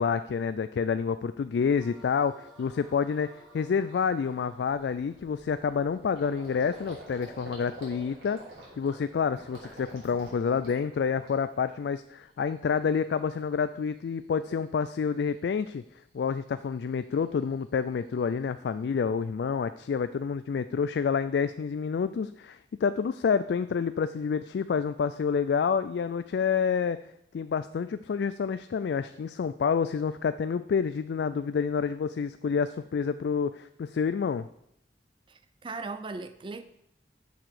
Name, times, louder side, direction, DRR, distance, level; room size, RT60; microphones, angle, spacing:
voice 1, 0.0-8.4 8.8-15.8 16.1-27.0 27.3-34.5, left 6 dB, 70° left, 0.3 m, -28 dB
sound 1, 1.5-6.7, equal, ahead, 3.8 m, -56 dB
Gurgling, 2.0-2.1 2.6-2.8 3.2-3.4 3.6-11.7 12.0-12.7, right 1 dB, 75° right, 4.0 m, -48 dB
voice 2, 35.3-36.6, right 3 dB, 30° right, 0.4 m, -38 dB
7.2 x 6.0 x 6.5 m
head